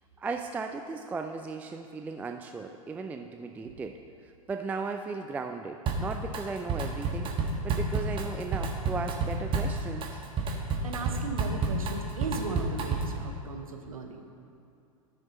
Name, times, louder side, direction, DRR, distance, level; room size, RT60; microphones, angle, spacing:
voice 1, 0.2-10.2, right 4 dB, 10° right, 5 dB, 0.3 m, -36 dB
Drum kit, 5.9-6.4 6.7-13.2, right 3 dB, 30° right, 1.3 m, -30 dB
voice 2, 10.8-14.2, right 4 dB, 75° right, 4 dB, 1.1 m, -37 dB
14.0 x 6.6 x 4.1 m, 2.5 s
figure-of-eight pair, 95°, 18 cm